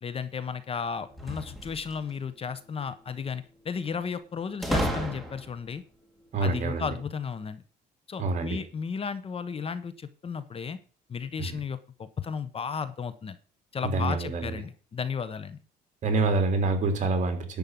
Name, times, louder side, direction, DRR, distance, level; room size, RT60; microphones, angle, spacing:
voice 1, 0.0-5.8 6.4-7.6 8.1-10.8 11.1-13.4 13.7-15.6, left 6 dB, 35° left, 14 dB, 1.0 m, -34 dB
sound 1, 1.1-2.2 4.6-5.7, equal, ahead, 2.6 m, -31 dB
voice 2, 6.3-6.9 8.2-8.6 11.4-11.6 13.9-14.6 16.0-17.6, right 3 dB, 45° right, 6 dB, 3.4 m, -27 dB
11.0 x 5.4 x 7.6 m, 0.38 s
cardioid pair, 110°, 17 cm